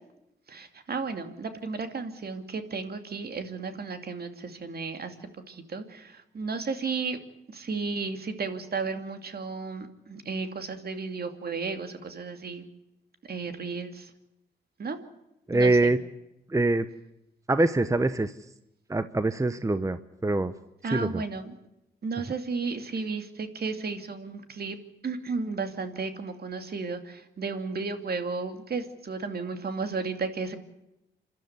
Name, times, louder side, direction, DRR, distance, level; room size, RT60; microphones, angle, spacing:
voice 1, 0.5-5.1 5.5-7.2 7.5-12.6 13.3-14.1 14.8-15.0 15.5-15.9 20.8-21.5 22.0-24.8 25.0-30.6, right 4 dB, 50° right, 8 dB, 2.6 m, -33 dB
voice 2, 15.5-16.0 16.5-16.9 17.5-18.4 18.9-20.5 20.9-21.2, right 2 dB, 15° right, 13 dB, 0.9 m, -24 dB
27.5 x 12.5 x 9.6 m, 0.88 s
cardioid pair, 60°, 20 cm